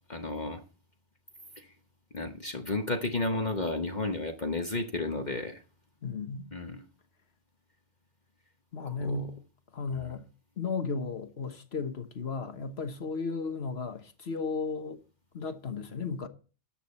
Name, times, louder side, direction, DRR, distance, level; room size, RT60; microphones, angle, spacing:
voice 1, 0.1-0.6 1.6-1.7 2.1-5.6 6.5-6.8 8.8-9.3 9.9-10.1, left 2 dB, 45° left, 1.2 m, -33 dB
voice 2, 6.0-6.5 8.7-9.3 9.7-10.2 10.6-15.0 15.3-16.3, left 4 dB, 70° left, 1.5 m, -34 dB
13.5 x 9.0 x 4.3 m
omnidirectional pair, 1.1 m